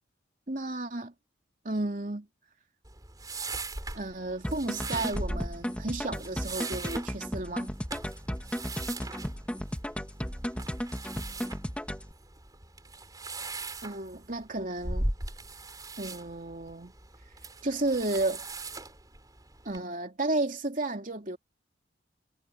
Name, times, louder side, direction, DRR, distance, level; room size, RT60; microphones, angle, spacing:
voice 1, 0.5-1.1 1.6-2.3 3.9-7.7 13.8-15.1 16.0-16.9 17.6-18.4 19.6-21.4, right 2 dB, 45° right, 3.1 m, -32 dB
sound 1, 2.8-19.8, right 2 dB, 20° right, 4.0 m, -40 dB
sound 2, 4.4-12.1, equal, 5° left, 2.5 m, -35 dB
head